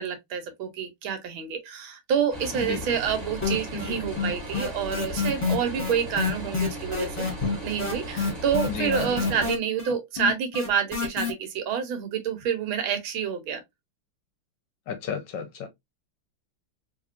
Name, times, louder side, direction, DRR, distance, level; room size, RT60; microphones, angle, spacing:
voice 1, 0.0-7.2 7.6-13.6, right 7 dB, 75° right, 1.7 m, -28 dB
sound 1, 2.3-9.5, equal, 20° right, 1.3 m, -37 dB
sound 2, 3.4-3.9 4.2-11.3, left 4 dB, 20° left, 1.1 m, -27 dB
voice 2, 8.7-9.3 14.9-15.7, left 7 dB, 70° left, 1.2 m, -32 dB
3.7 x 2.9 x 2.4 m
omnidirectional pair, 2.3 m